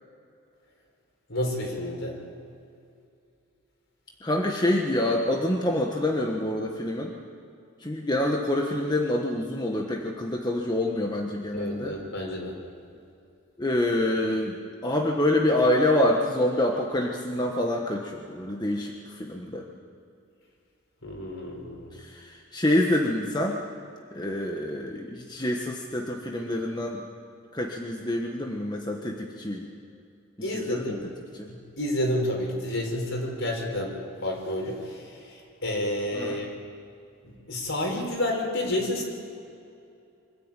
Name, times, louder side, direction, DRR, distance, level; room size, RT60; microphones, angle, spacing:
voice 1, 1.3-2.2 11.5-12.5 21.0-21.9 30.4-31.0 31.5-33.9 34.2-36.5 37.2-39.1, left 1 dB, 65° left, 0 dB, 5.1 m, -30 dB
voice 2, 4.2-7.1 7.8-12.0 13.6-14.6 14.8-19.6 21.9-23.6 24.1-27.0 27.5-29.7 30.5-31.0 31.4-31.5 36.1-36.4, left 1 dB, 20° left, 0 dB, 1.4 m, -26 dB
25.0 x 14.0 x 9.0 m, 2.5 s
head